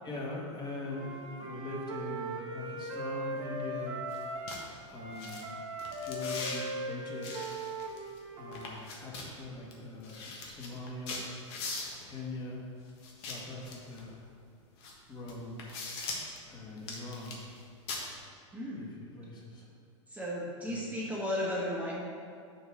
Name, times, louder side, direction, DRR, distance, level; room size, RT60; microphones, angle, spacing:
voice 1, 0.0-4.0 4.9-5.6 6.0-7.5 8.4-11.3 12.0-12.6 13.2-14.2 15.1-15.6 16.5-17.4 18.7-19.6 20.7-20.8, left 2 dB, 25° left, -3 dB, 1.7 m, -42 dB
Wind instrument woodwind instrument, 0.9-4.6 4.9-8.8, right 1 dB, 60° right, 1.1 m, -39 dB
sound 1, 4.1-4.2 4.5-4.6 5.2-5.4 5.8-6.6 7.2-8.2 8.5-9.3 9.7-9.8 10.0-12.1 13.0-14.1 14.8-14.9 15.3-16.4 16.8-17.6 17.9-18.0, left 3 dB, 55° left, 1.5 m, -40 dB
voice 2, 18.5-18.9 20.1-21.9, left 1 dB, 10° right, -5 dB, 1.2 m, -34 dB
6.3 x 4.6 x 6.4 m, 2.3 s
hypercardioid pair, 95°, 16 cm